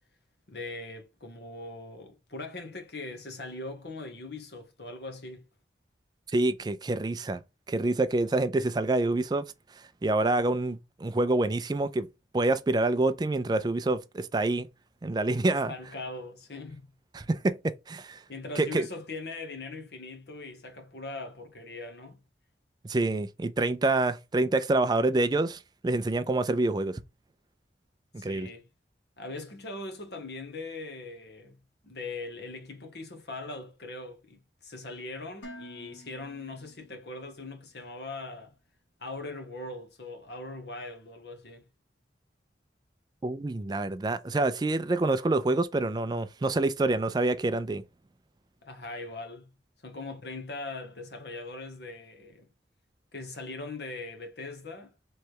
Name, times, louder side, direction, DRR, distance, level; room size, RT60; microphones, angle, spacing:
voice 1, 0.5-5.5 15.5-16.9 18.3-22.2 28.2-28.7 29.2-38.6 39.0-41.7 48.6-49.6 49.8-52.5 53.1-54.9, left 2 dB, 60° left, 1.0 m, -41 dB
voice 2, 6.3-7.4 7.7-9.5 10.0-12.1 12.3-14.7 15.0-15.7 17.1-18.2 18.6-18.9 22.8-27.0 28.1-28.5 43.2-47.8, right 2 dB, 20° right, 0.3 m, -27 dB
Dishes pots and pans, 35.4-37.5, left 1 dB, 85° left, 1.1 m, -49 dB
3.2 x 3.1 x 4.5 m
head